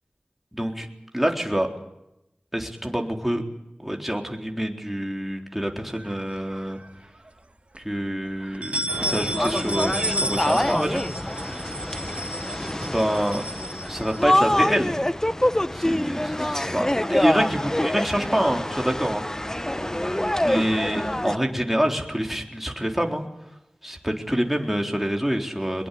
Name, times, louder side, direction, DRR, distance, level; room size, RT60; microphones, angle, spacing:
voice 1, 0.5-0.9 1.1-1.7 2.5-3.4 3.8-6.8 7.8-11.9 12.8-13.4 13.9-15.0 15.7-19.2 19.6-19.8 20.3-23.2 23.8-25.9, equal, 5° right, 2 dB, 3.9 m, -26 dB
sound 1, 6.0-6.9 7.3-7.4 7.7-7.8 8.4-14.6, right 1 dB, 45° right, 2.2 m, -32 dB
sound 2, 8.9-21.4, left 1 dB, 20° left, 0.8 m, -26 dB
23.0 x 21.5 x 8.5 m, 0.88 s
wide cardioid pair, 45°, 3 cm